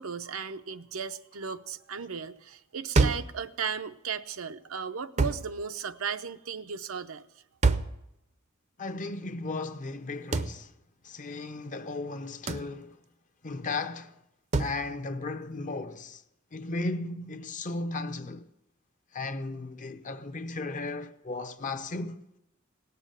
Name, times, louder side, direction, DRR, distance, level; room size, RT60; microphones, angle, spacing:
voice 1, 0.0-7.2, right 6 dB, 80° right, 0.7 m, -36 dB
sound 1, 3.0-3.4 5.2-5.5 7.6-8.0 10.3-10.6 12.5-12.7 14.5-14.8, right 3 dB, 35° right, 0.6 m, -25 dB
voice 2, 8.8-10.7 11.0-13.0 13.4-14.2 14.6-16.2 16.5-18.5 19.1-22.2, left 3 dB, 40° left, 0.7 m, -35 dB
17.5 x 7.0 x 9.0 m
head